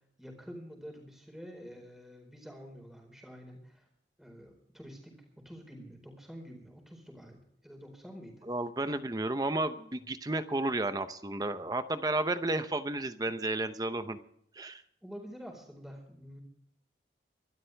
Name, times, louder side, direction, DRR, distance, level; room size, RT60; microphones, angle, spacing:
voice 1, 0.0-3.9 4.2-8.4 15.0-16.4, equal, ahead, 2 dB, 4.4 m, -48 dB
voice 2, 8.5-14.2 14.6-14.8, right 2 dB, 20° right, 10 dB, 0.7 m, -32 dB
25.0 x 12.5 x 3.4 m, 0.70 s
head